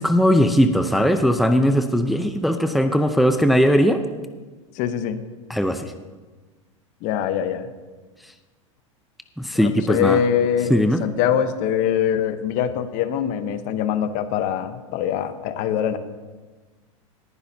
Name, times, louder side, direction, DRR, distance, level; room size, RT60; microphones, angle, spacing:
voice 1, 0.0-4.0 5.5-5.9 9.4-10.2 10.7-11.0, equal, ahead, 7 dB, 0.6 m, -19 dB
voice 2, 4.8-5.2 7.0-7.7 9.5-10.7 11.0-16.0, left 9 dB, 50° left, 11 dB, 0.9 m, -23 dB
19.0 x 10.0 x 2.8 m, 1.3 s
hypercardioid pair, 105°, 17 cm